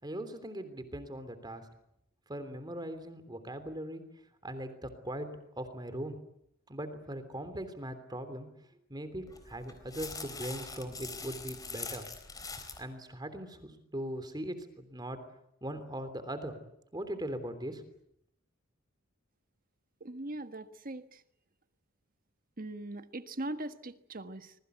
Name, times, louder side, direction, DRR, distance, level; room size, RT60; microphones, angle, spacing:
voice 1, 0.0-1.6 2.3-4.0 4.4-5.3 5.6-6.1 6.7-8.5 8.9-12.1 12.8-15.2 15.6-16.6 16.9-17.9, right 1 dB, 20° right, 10 dB, 3.2 m, -40 dB
sound 1, 9.3-12.8, left 4 dB, 15° left, 4.0 m, -43 dB
voice 2, 20.0-21.2 22.6-24.5, right 2 dB, 40° right, 10 dB, 1.5 m, -40 dB
26.0 x 22.0 x 8.1 m, 0.77 s
head